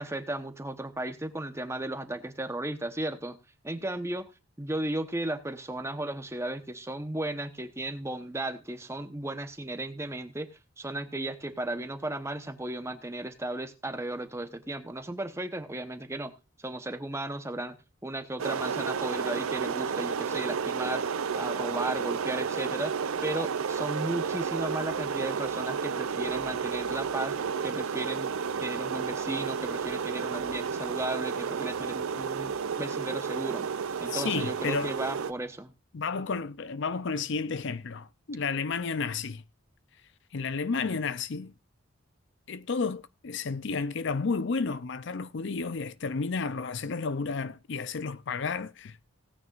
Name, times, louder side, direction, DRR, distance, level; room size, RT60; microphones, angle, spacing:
voice 1, 0.0-3.4 3.6-4.3 4.6-10.5 10.8-16.3 16.6-17.8 18.0-27.3 27.6-28.3 28.6-33.7 34.0-35.7, right 1 dB, 15° right, 0.9 m, -35 dB
sound 1, 18.4-35.3, right 6 dB, 90° right, 0.6 m, -32 dB
voice 2, 34.1-35.0 35.9-39.4 40.3-41.5 42.5-49.1, left 4 dB, 55° left, 0.5 m, -32 dB
17.5 x 9.4 x 2.5 m
head